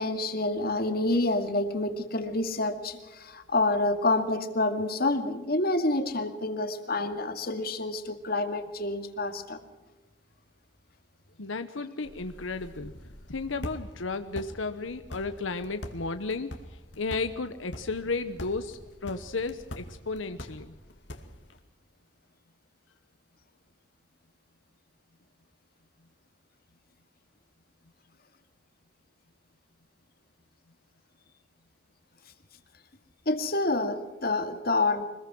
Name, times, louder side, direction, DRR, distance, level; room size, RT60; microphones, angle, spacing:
voice 1, 0.0-9.6 33.3-35.0, left 2 dB, 50° left, 8 dB, 2.2 m, -28 dB
voice 2, 11.4-12.9 13.3-20.8, left 3 dB, 85° left, 9 dB, 1.0 m, -34 dB
sound 1, 12.0-21.6, left 1 dB, 70° left, 2.4 m, -44 dB
25.0 x 21.0 x 6.2 m, 1.1 s
head